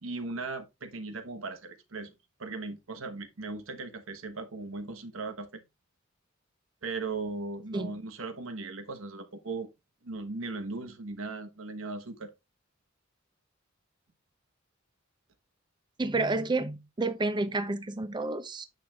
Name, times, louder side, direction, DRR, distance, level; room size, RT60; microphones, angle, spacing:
voice 1, 0.0-2.1 2.4-5.6 6.8-9.7 10.0-12.3, right 3 dB, 90° right, 1.1 m, -38 dB
voice 2, 16.0-18.6, right 2 dB, 25° right, 0.5 m, -30 dB
9.2 x 6.3 x 2.3 m
head